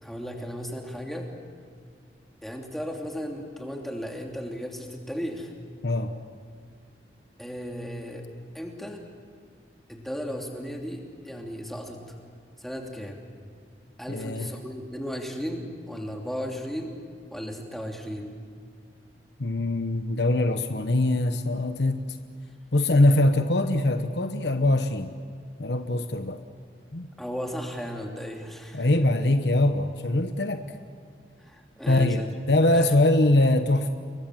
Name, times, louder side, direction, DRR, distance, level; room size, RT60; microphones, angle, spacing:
voice 1, 0.0-1.3 2.4-5.5 7.4-8.3 8.5-9.0 9.9-12.1 12.6-13.2 14.0-16.9 17.3-18.4 27.2-28.9 31.4-32.3 32.7-32.9, equal, ahead, 1 dB, 2.9 m, -35 dB
voice 2, 14.1-14.5 19.4-22.1 22.7-25.1 25.6-26.4 26.9-27.1 28.7-30.6 31.9-33.9, left 1 dB, 75° left, 8 dB, 1.2 m, -22 dB
29.0 x 22.5 x 7.7 m, 2.1 s
head